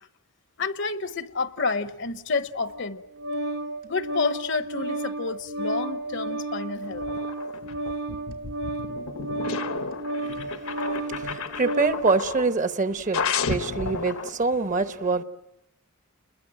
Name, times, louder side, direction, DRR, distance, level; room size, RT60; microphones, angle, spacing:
voice 1, 0.6-3.0 3.8-7.1, left 4 dB, 55° left, 0.9 m, -29 dB
Organ, 2.7-12.1, right 2 dB, 75° right, 2.7 m, -32 dB
sound 1, 6.8-12.6 13.1-14.3, left 5 dB, 75° left, 1.1 m, -32 dB
voice 2, 10.2-15.2, right 3 dB, 35° right, 0.9 m, -26 dB
30.0 x 21.5 x 7.7 m
head